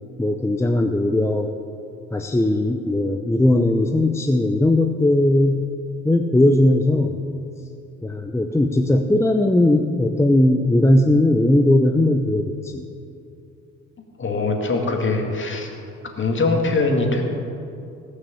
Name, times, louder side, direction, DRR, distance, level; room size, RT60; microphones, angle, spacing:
voice 1, 0.2-1.5 2.1-5.7 6.0-7.2 8.0-12.9, left 1 dB, 10° left, 4 dB, 0.7 m, -18 dB
voice 2, 14.2-15.7 16.1-17.2, left 3 dB, 40° left, 2 dB, 2.3 m, -22 dB
18.0 x 6.4 x 7.2 m, 2.6 s
cardioid pair, 90°, 30 cm